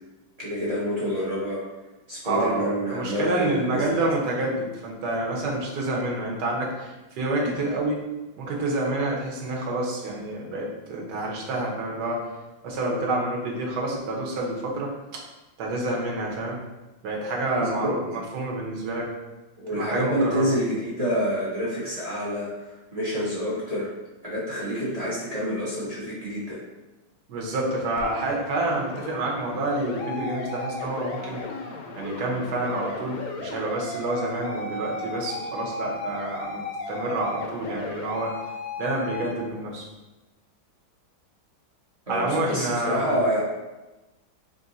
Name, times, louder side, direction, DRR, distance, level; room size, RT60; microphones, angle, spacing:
voice 1, 0.4-1.6 2.1-4.0 7.4-7.5 17.6-18.0 19.6-23.9 24.2-26.6 42.1-43.4, equal, 30° right, -8 dB, 0.7 m, -28 dB
voice 2, 2.2-8.1 8.4-12.3 12.6-15.2 15.6-16.6 17.0-19.1 19.7-20.5 27.3-31.4 31.9-38.3 38.8-39.9 42.1-43.2, right 2 dB, 60° right, -2 dB, 1.3 m, -28 dB
sound 1, 28.0-39.3, left 3 dB, 75° left, 0.8 m, -35 dB
3.8 x 2.5 x 3.9 m, 1.1 s
omnidirectional pair, 2.1 m